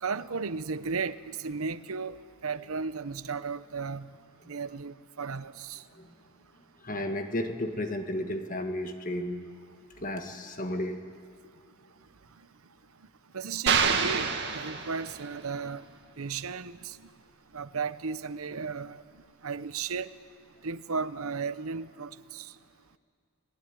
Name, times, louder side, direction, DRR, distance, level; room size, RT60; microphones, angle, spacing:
voice 1, 0.0-2.2 2.4-4.1 4.5-5.8 13.3-15.8 16.2-17.0 17.5-19.0 19.4-20.1 20.6-22.5, right 5 dB, 80° right, 13 dB, 0.8 m, -35 dB
voice 2, 6.8-9.5 10.0-11.0, left 1 dB, 40° left, 5 dB, 1.8 m, -33 dB
sound 1, 13.7-15.4, right 6 dB, 50° right, 2.0 m, -27 dB
30.0 x 19.5 x 9.8 m, 2.2 s
head